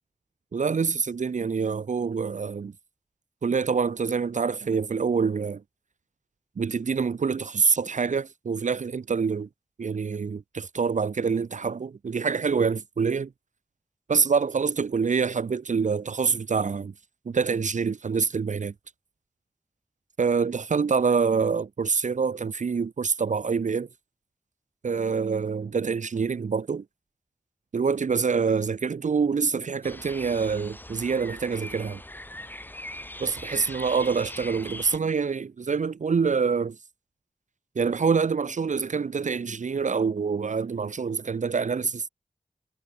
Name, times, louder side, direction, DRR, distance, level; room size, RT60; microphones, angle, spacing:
voice 1, 0.5-2.7 3.4-5.6 6.6-9.5 9.8-13.3 14.1-16.9 17.3-18.7 20.2-23.9 24.8-26.8 27.7-32.0 33.2-36.8 37.8-42.1, right 5 dB, 70° right, 0.5 m, -26 dB
sound 1, 29.8-35.0, left 1 dB, 15° left, 1.0 m, -41 dB
wide cardioid pair, 65°, 13 cm